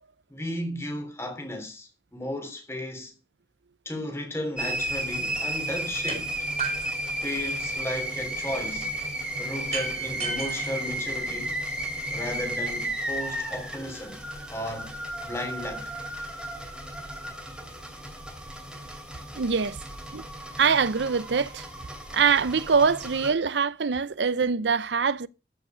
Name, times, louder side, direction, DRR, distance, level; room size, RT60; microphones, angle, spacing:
voice 1, 0.3-3.1 3.8-6.3 7.2-8.9 9.4-11.6 12.1-14.2 14.5-15.0 15.3-15.9, left 1 dB, 15° left, 3.2 m, -34 dB
sound 1, 4.6-23.3, right 1 dB, 5° right, 2.8 m, -33 dB
sound 2, 6.1-6.2 6.6-7.8 9.7-11.7, right 5 dB, 40° right, 3.7 m, -35 dB
voice 2, 19.3-19.8 20.1-20.2 20.6-21.6 22.1-25.3, right 5 dB, 85° right, 0.6 m, -23 dB
13.5 x 6.4 x 6.2 m
head